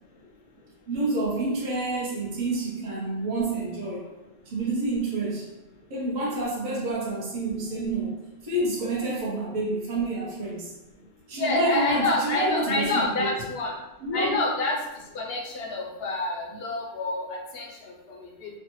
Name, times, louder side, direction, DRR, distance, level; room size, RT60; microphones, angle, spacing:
voice 1, 0.9-4.1 4.5-5.5 5.9-10.7 11.3-13.3 14.0-14.4, right 2 dB, 45° right, -6 dB, 0.7 m, -28 dB
voice 2, 11.3-13.7 14.1-14.8 15.1-18.5, left 2 dB, 60° left, -1 dB, 0.7 m, -28 dB
3.1 x 2.0 x 2.9 m, 1.0 s
omnidirectional pair, 1.3 m